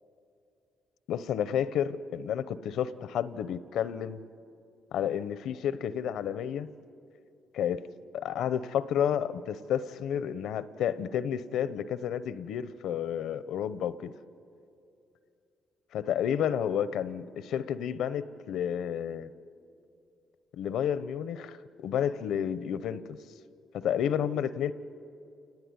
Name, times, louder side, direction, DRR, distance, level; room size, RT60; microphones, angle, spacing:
voice 1, 1.1-4.2 4.9-6.7 7.5-7.8 8.1-14.1 15.9-19.3 20.6-23.2 23.7-24.7, left 9 dB, 80° left, 15 dB, 0.8 m, -31 dB
29.5 x 19.0 x 9.6 m, 2.6 s
cardioid pair, 90°, 0 cm